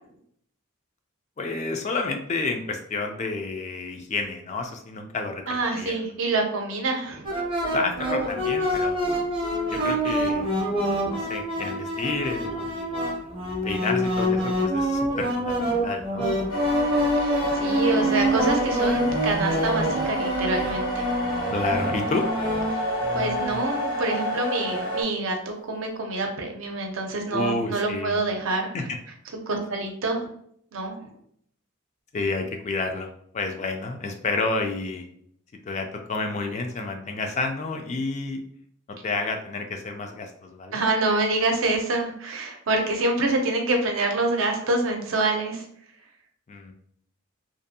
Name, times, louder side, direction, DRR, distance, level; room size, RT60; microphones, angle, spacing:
voice 1, 1.4-6.0 7.7-9.0 9.7-10.5 11.0-13.0 13.6-16.3 21.5-22.2 27.3-28.2 28.7-29.0 32.1-35.1 35.6-38.4 39.0-40.8 46.5-46.7, left 3 dB, 35° left, 4 dB, 0.3 m, -30 dB
voice 2, 5.5-7.3 17.2-21.0 22.7-22.8 23.1-28.7 29.5-30.3 30.7-31.0 40.7-45.6, right 2 dB, 70° right, 3 dB, 0.6 m, -26 dB
sound 1, 7.3-23.6, equal, 25° right, 0.6 m, -26 dB
sound 2, 16.5-25.0, equal, 90° left, 1.2 m, -29 dB
2.6 x 2.5 x 2.6 m, 0.66 s
head